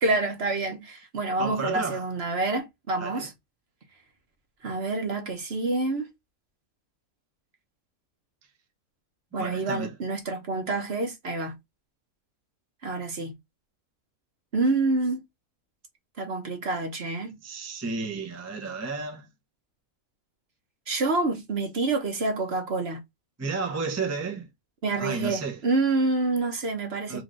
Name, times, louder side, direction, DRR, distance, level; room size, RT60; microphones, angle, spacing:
voice 1, 0.0-3.3 4.6-6.1 9.3-11.6 12.8-13.3 14.5-15.2 16.2-17.4 20.9-23.0 24.8-27.2, right 3 dB, 50° right, 1.1 m, -27 dB
voice 2, 1.4-2.1 3.0-3.3 9.3-9.9 17.4-19.3 23.4-24.5 25.0-25.6 27.1-27.2, right 4 dB, 15° right, 0.5 m, -32 dB
3.2 x 3.1 x 3.8 m
omnidirectional pair, 1.5 m